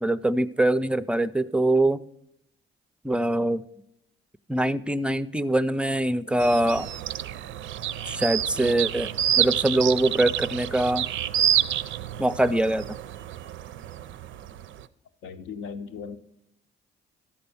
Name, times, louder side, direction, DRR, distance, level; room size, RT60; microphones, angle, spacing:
voice 1, 0.0-2.0 3.0-3.6 4.5-6.9 8.1-9.1 9.4-11.1 12.2-12.8, right 1 dB, 5° right, 14 dB, 0.3 m, -23 dB
sound 1, 6.4-14.8, right 11 dB, 75° right, 0.4 m, -28 dB
voice 2, 15.2-16.2, left 5 dB, 85° left, 9 dB, 0.7 m, -37 dB
13.0 x 4.3 x 6.9 m, 0.75 s
cardioid pair, 90°, 20 cm